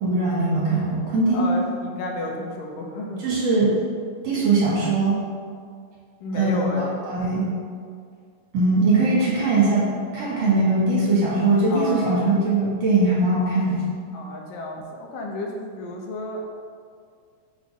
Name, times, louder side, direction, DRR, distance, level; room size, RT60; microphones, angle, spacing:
voice 1, 0.0-1.5 3.2-3.7 4.2-5.2 6.4-6.6 7.1-7.5 8.5-9.9 10.1-13.8, right 3 dB, 55° right, -7 dB, 2.7 m, -20 dB
voice 2, 1.3-3.3 6.2-7.0 11.7-12.3 14.1-16.5, left 1 dB, 90° left, 1 dB, 2.5 m, -32 dB
6.2 x 4.1 x 6.0 m, 2.1 s
omnidirectional pair, 3.8 m